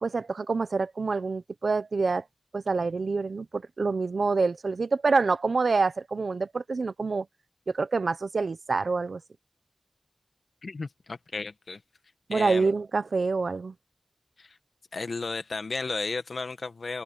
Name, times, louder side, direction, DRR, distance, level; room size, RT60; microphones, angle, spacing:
voice 1, 0.0-2.2 2.5-7.3 7.7-9.2 12.3-13.7, right 4 dB, 75° right, 1.1 m, -26 dB
voice 2, 10.6-11.8 12.3-12.7 14.4-14.6 14.9-17.0, left 3 dB, 70° left, 1.7 m, -34 dB
open air
wide cardioid pair, 75°, 0 cm